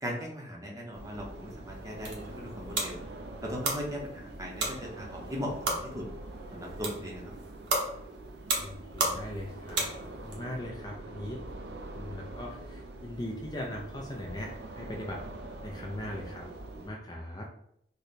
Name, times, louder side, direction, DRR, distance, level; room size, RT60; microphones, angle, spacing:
voice 1, 0.0-3.0 3.4-6.1 6.5-7.3, equal, 20° right, -2 dB, 0.7 m, -38 dB
sound 1, 0.9-16.9, right 2 dB, 70° right, 0.5 m, -44 dB
sound 2, 1.7-10.4, right 2 dB, 90° right, 0.8 m, -35 dB
voice 2, 8.5-11.4 11.9-15.2 15.6-16.5 16.8-17.5, left 1 dB, 20° left, -1 dB, 0.4 m, -40 dB
3.2 x 2.1 x 3.9 m, 0.71 s
head